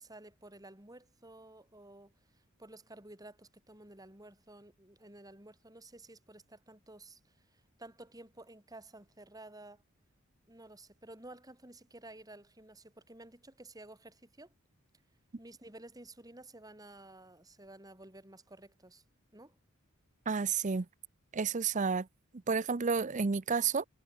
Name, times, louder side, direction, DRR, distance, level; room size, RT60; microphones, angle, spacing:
voice 1, 0.0-9.8 10.5-14.5 15.4-19.0 19.3-19.6, right 2 dB, 20° right, 4.2 m, -53 dB
voice 2, 20.3-20.9 21.3-22.1 22.5-23.9, right 5 dB, 35° right, 0.6 m, -30 dB
head